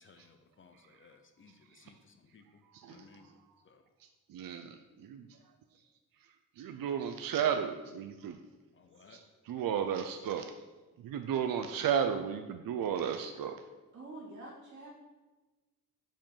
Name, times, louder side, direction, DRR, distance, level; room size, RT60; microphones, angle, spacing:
voice 1, 0.0-3.3 3.6-3.8 8.7-9.2, left 5 dB, 40° left, 7 dB, 0.6 m, -60 dB
voice 2, 2.6-2.9 4.3-5.4 6.6-8.4 9.1-9.2 9.5-10.5 11.0-13.6, right 8 dB, 85° right, 6 dB, 0.6 m, -34 dB
voice 3, 13.9-14.9, right 2 dB, 60° right, -3 dB, 2.4 m, -48 dB
7.0 x 5.1 x 5.5 m, 1.2 s
wide cardioid pair, 160°, 33 cm